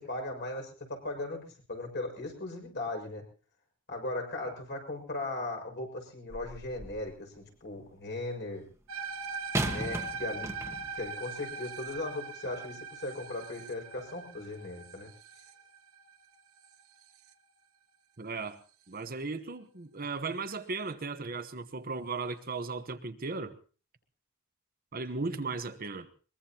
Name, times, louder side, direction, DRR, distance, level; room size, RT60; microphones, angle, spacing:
voice 1, 0.0-3.2 3.9-8.6 9.7-10.5 10.9-15.1, left 2 dB, 55° left, 6.2 m, -38 dB
sound 1, 6.3-7.1 9.5-11.1 11.9-12.0, right 1 dB, 15° right, 1.4 m, -36 dB
sound 2, 8.9-17.3, right 5 dB, 70° right, 1.2 m, -41 dB
voice 2, 18.2-18.6 18.9-23.5 24.9-26.1, right 3 dB, 45° right, 1.1 m, -36 dB
22.5 x 22.0 x 2.9 m
head